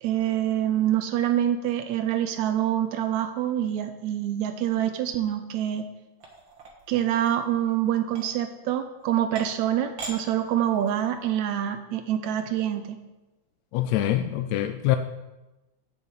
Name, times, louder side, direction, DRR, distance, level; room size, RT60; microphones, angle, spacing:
voice 1, 0.0-5.9 6.9-13.0, right 11 dB, 80° right, 8 dB, 1.9 m, -26 dB
sound 1, 6.2-7.4 8.1-8.3 9.0-9.1 9.4-9.7 10.0-10.2 10.5-11.0, right 3 dB, 45° right, 2.1 m, -40 dB
voice 2, 13.7-15.0, left 13 dB, 80° left, 8 dB, 1.6 m, -24 dB
7.5 x 7.2 x 8.2 m, 1.0 s
omnidirectional pair, 3.5 m